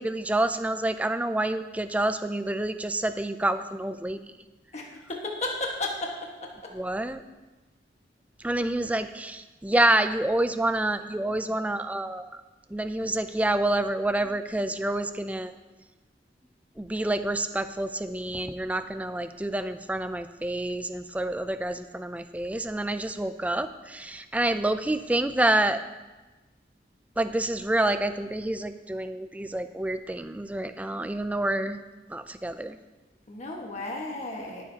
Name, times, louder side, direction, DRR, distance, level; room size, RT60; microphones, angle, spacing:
voice 1, 0.0-4.2 6.7-7.2 8.4-12.3 12.7-15.5 16.8-25.8 27.2-31.8 32.1-32.8, right 1 dB, 10° right, 10 dB, 0.4 m, -28 dB
voice 2, 5.4-5.9 30.8-30.9 33.3-34.6, left 2 dB, 40° left, -1 dB, 1.5 m, -33 dB
21.5 x 7.3 x 2.9 m, 1.2 s
head